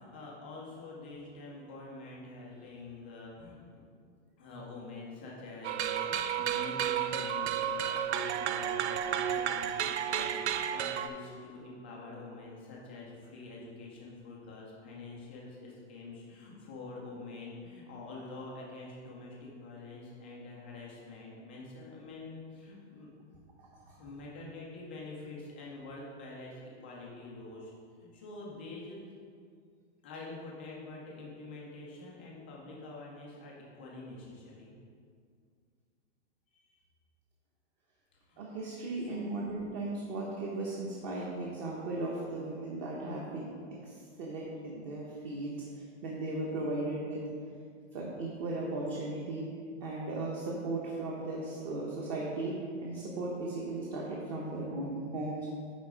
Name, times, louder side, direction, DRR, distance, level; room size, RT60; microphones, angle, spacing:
voice 1, 0.0-3.8 4.4-9.8 10.1-23.1 24.0-27.7 28.0-29.0 30.0-34.7 36.5-36.8 38.1-38.4 39.0-39.3, left 2 dB, 10° left, -4 dB, 0.3 m, -46 dB
sound 1, 5.6-11.1, right 9 dB, 65° right, 0.5 m, -32 dB
voice 2, 23.6-24.0 38.4-43.5 43.8-47.2 47.9-49.5 49.8-52.5 52.8-55.5, right 2 dB, 30° right, -3 dB, 0.9 m, -37 dB
9.4 x 3.6 x 4.9 m, 2.2 s
hypercardioid pair, 160°, 36 cm